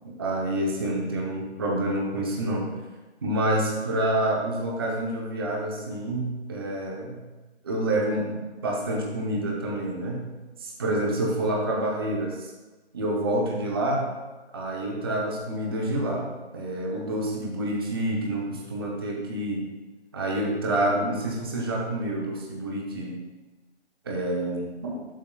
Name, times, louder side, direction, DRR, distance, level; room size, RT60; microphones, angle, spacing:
voice 1, 0.0-2.7 3.2-7.2 7.6-10.3 10.6-12.5 12.9-14.1 14.5-19.7 20.1-23.2 24.0-25.0, right 1 dB, 20° right, -1 dB, 0.7 m, -28 dB
11.5 x 7.3 x 2.3 m, 1.2 s
hypercardioid pair, 165°, 34 cm